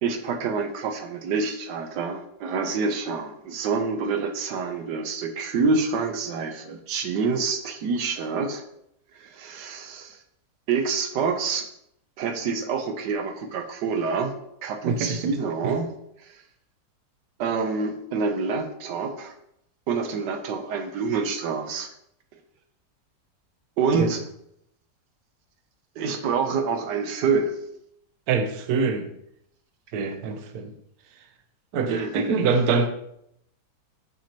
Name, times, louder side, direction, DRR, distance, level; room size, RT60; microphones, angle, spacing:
voice 1, 0.0-8.6 9.2-10.2 10.7-11.6 12.2-14.3 14.6-15.9 16.2-16.4 17.4-19.3 19.9-21.9 23.8-24.3 26.0-27.6 31.9-32.1, right 5 dB, 85° right, 6 dB, 1.3 m, -27 dB
voice 2, 14.8-15.3 24.0-24.1 28.3-29.1 29.9-30.7 31.7-32.9, right 5 dB, 65° right, 7 dB, 1.1 m, -24 dB
7.1 x 5.9 x 2.8 m, 0.75 s
omnidirectional pair, 1.8 m